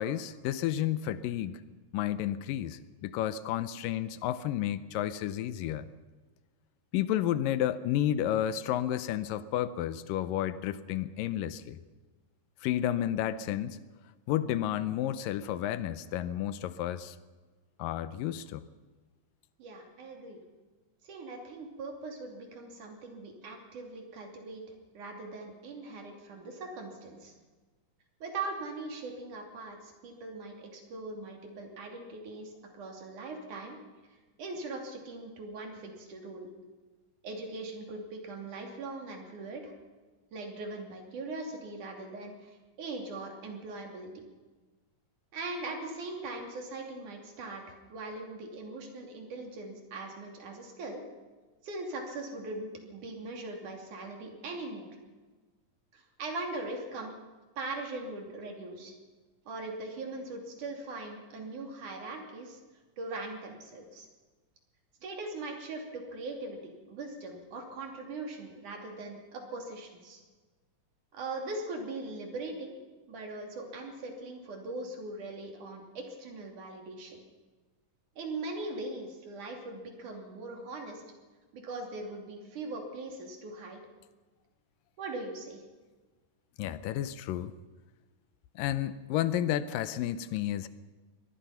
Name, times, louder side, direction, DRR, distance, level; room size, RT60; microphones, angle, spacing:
voice 1, 0.0-1.6 1.9-5.9 6.9-11.8 12.6-13.8 14.3-17.2 17.8-18.7 86.6-87.5 88.6-90.7, left 11 dB, 80° left, 14 dB, 2.5 m, -31 dB
voice 2, 19.6-20.4 21.0-24.6 24.9-27.3 28.2-33.8 34.4-36.5 37.2-39.7 40.3-44.2 45.3-51.0 51.6-54.9 55.9-57.1 57.6-58.9 59.5-62.6 63.0-64.1 65.0-70.2 71.1-72.8 73.1-77.2 78.2-81.0 81.5-83.8 85.0-85.6, right 2 dB, 65° right, 3 dB, 4.2 m, -40 dB
23.5 x 19.0 x 5.8 m, 1.3 s
omnidirectional pair, 3.9 m